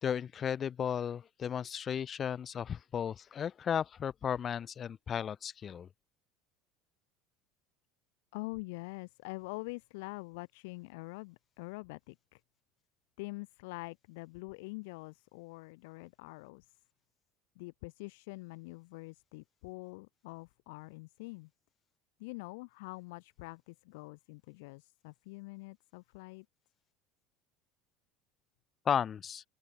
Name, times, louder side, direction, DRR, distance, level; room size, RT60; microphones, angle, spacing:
voice 1, 0.0-5.9 28.8-29.4, left 8 dB, 35° left, 4.9 m, -34 dB
voice 2, 8.3-12.4 13.2-16.8 17.6-21.5 22.2-26.5, left 26 dB, 80° left, 6.2 m, -45 dB
open air
supercardioid pair, 105°, 0 cm